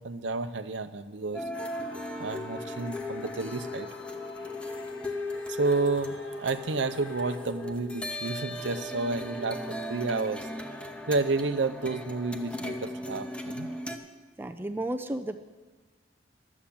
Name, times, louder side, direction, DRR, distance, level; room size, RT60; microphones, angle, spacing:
voice 1, 0.0-1.4 2.2-3.9 5.5-10.5 11.1-13.7, right 3 dB, 70° right, 11 dB, 0.7 m, -30 dB
sound 1, 1.3-14.0, left 1 dB, 5° left, 0.8 m, -37 dB
sound 2, 1.5-7.4, left 5 dB, 65° left, 0.9 m, -50 dB
voice 2, 14.4-15.4, right 1 dB, 10° right, 7 dB, 0.4 m, -33 dB
11.5 x 7.2 x 8.6 m, 1.4 s
head